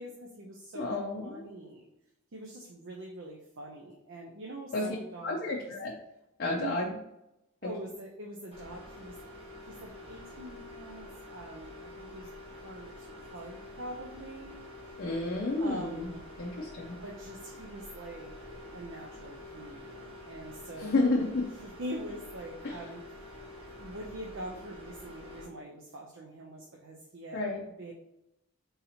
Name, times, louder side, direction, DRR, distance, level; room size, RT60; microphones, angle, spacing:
voice 1, 0.0-0.9 1.2-1.9 2.3-5.6 6.5-6.8 7.6-9.2 9.7-14.6 14.9-15.0 15.6-16.2 17.0-21.0 21.6-23.3 23.6-27.9, right 1 dB, 60° right, 0 dB, 0.5 m, -44 dB
voice 2, 0.8-1.4 4.7-4.8 5.2-5.9 6.4-6.9 15.0-16.0 16.4-17.0 20.8-21.5 22.6-22.7 27.3-27.6, left 2 dB, 45° left, -2 dB, 0.5 m, -30 dB
sound 1, 8.5-25.4, left 1 dB, 25° right, 1.3 m, -47 dB
3.9 x 2.8 x 4.2 m, 0.88 s
head